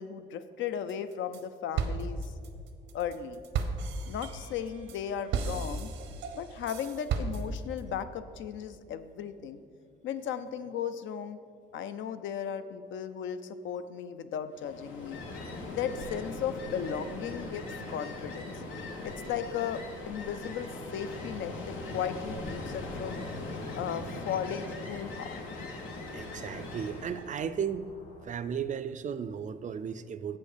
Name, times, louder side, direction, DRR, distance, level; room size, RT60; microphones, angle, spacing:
voice 1, 0.0-2.3 2.9-3.4 4.1-5.9 6.3-9.6 10.0-11.4 11.7-15.2 15.7-18.6 19.0-23.2 23.7-25.4, left 8 dB, 75° left, 11 dB, 0.5 m, -36 dB
sound 1, 0.9-1.4 1.8-7.8, right 5 dB, 80° right, 0.7 m, -34 dB
Ocean, 14.5-27.3, left 2 dB, 90° left, 1.1 m, -40 dB
sound 2, 17.4-28.4, left 1 dB, 55° left, 1.8 m, -55 dB
voice 2, 26.1-27.9 28.2-30.4, right 7 dB, 40° right, 14 dB, 0.4 m, -35 dB
7.2 x 5.2 x 6.6 m, 2.3 s
cardioid pair, 90°, 20 cm